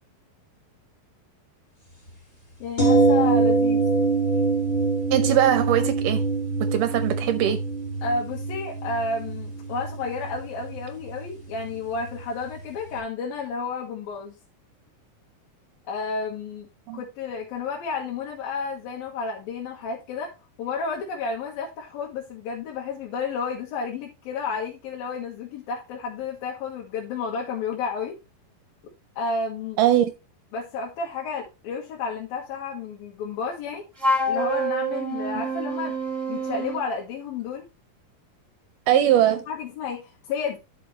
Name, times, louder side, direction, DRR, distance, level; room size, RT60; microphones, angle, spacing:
voice 1, 2.6-3.8 8.0-14.3 15.9-16.7 16.9-28.2 29.2-29.8 30.5-33.8 34.3-35.9 36.3-37.7 38.9-39.0 39.5-40.6, left 4 dB, 80° left, 3.4 m, -31 dB
sound 1, 2.8-12.6 12.9-13.0, right 3 dB, 15° left, 1.9 m, -25 dB
voice 2, 5.1-6.2 6.7-7.6 16.9-17.0 29.8-30.1 38.9-39.4, right 12 dB, 75° right, 2.1 m, -20 dB
Wind instrument woodwind instrument, 34.0-36.9, right 1 dB, 5° right, 2.5 m, -27 dB
11.0 x 5.8 x 3.2 m
omnidirectional pair, 4.2 m